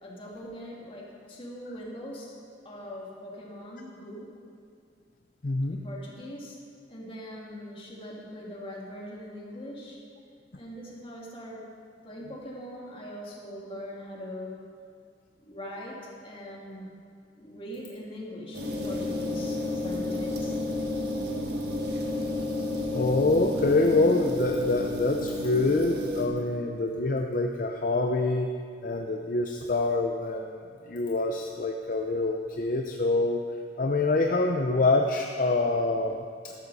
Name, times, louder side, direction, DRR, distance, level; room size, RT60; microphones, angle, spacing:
voice 1, 0.0-2.3 2.6-4.3 5.7-10.0 10.5-11.7 12.0-14.6 15.4-16.9 17.4-20.8, equal, 30° left, -4 dB, 2.5 m, -41 dB
voice 2, 5.4-5.8 22.9-28.5 28.8-33.4 33.8-36.5, left 2 dB, 50° left, 3 dB, 0.6 m, -26 dB
sound 1, 18.5-26.3, left 1 dB, 65° right, 1.7 m, -31 dB
13.5 x 13.0 x 4.2 m, 2.3 s
head